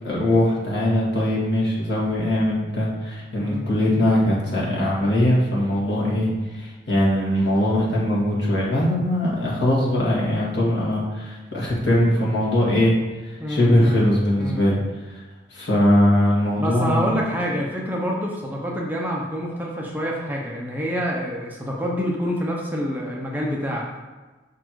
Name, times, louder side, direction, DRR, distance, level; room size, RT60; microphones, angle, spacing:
voice 1, 0.0-12.9 13.2-14.8 15.1-15.2 15.5-17.1, left 1 dB, 65° left, -5 dB, 2.0 m, -21 dB
voice 2, 3.4-3.7 13.4-14.1 14.4-14.7 16.6-23.8, equal, 10° right, -2 dB, 0.7 m, -27 dB
6.0 x 4.3 x 4.6 m, 1.2 s
head